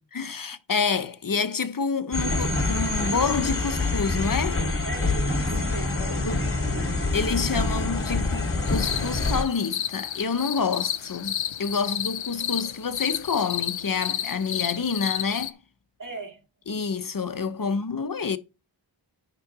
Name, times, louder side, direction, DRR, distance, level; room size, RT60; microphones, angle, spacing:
voice 1, 0.1-4.6 6.2-6.4 7.1-15.6 16.7-18.4, left 5 dB, 45° left, 0.8 m, -28 dB
sound 1, 2.1-9.4, left 2 dB, 30° left, 2.7 m, -26 dB
voice 2, 4.8-7.1 16.0-16.8 17.6-17.8, right 2 dB, 45° right, 2.4 m, -41 dB
sound 2, 8.7-15.5, left 10 dB, 85° left, 0.6 m, -31 dB
9.5 x 3.8 x 6.1 m
wide cardioid pair, 65°, 45 cm